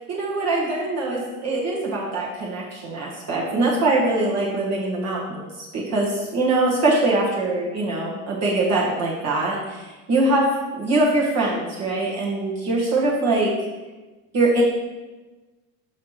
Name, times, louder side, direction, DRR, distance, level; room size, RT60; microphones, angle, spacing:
voice 1, 0.1-10.5 10.8-13.5 14.3-14.6, right 2 dB, 40° right, -5 dB, 1.5 m, -23 dB
6.2 x 5.7 x 3.2 m, 1.2 s
supercardioid pair, 120°, 41 cm